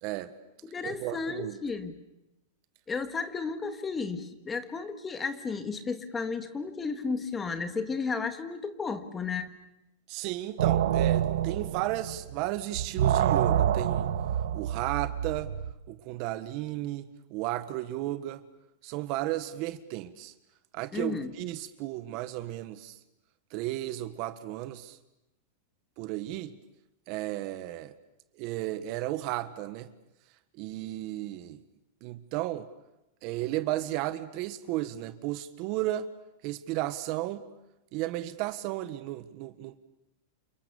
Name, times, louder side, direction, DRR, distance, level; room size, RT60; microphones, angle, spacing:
voice 1, 0.0-0.3 0.8-1.6 10.1-14.1 14.5-15.5 15.9-18.4 18.8-20.3 20.7-23.0 23.5-25.0 26.0-26.6 27.1-27.9 28.4-29.9 30.6-31.6 32.0-32.7 33.2-36.1 36.4-37.5 37.9-39.8, right 15 dB, 45° right, 12 dB, 1.4 m, -34 dB
voice 2, 0.7-1.9 2.9-9.6 20.9-21.3, left 4 dB, 15° left, 10 dB, 1.8 m, -33 dB
sound 1, 10.6-12.5 12.7-15.7, right 10 dB, 80° right, 1.6 m, -27 dB
29.5 x 27.5 x 7.1 m, 0.90 s
supercardioid pair, 150°, 0 cm